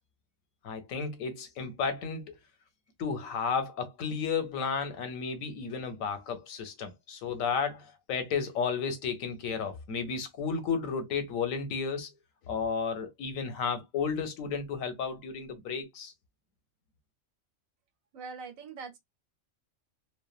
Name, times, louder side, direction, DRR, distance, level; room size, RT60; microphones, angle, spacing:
voice 1, 0.6-2.4 3.0-12.1 12.5-16.1, left 5 dB, 90° left, 1.2 m, -33 dB
voice 2, 18.1-19.0, right 5 dB, 80° right, 1.2 m, -42 dB
3.2 x 2.1 x 2.3 m
omnidirectional pair, 1.4 m